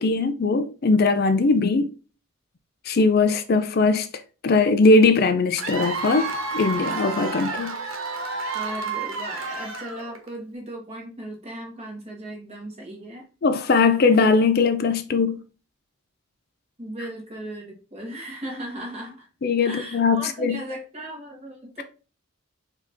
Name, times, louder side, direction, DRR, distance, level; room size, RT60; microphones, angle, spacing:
voice 1, 0.0-1.9 2.8-4.1 4.4-7.7 13.4-15.4 19.4-20.6, left 3 dB, 50° left, 0.4 m, -20 dB
Cheering / Applause / Crowd, 5.6-10.3, right 3 dB, 85° right, 1.2 m, -30 dB
voice 2, 8.5-13.3 16.8-19.3 19.6-21.8, right 1 dB, 30° right, 1.7 m, -37 dB
4.7 x 2.9 x 3.5 m
head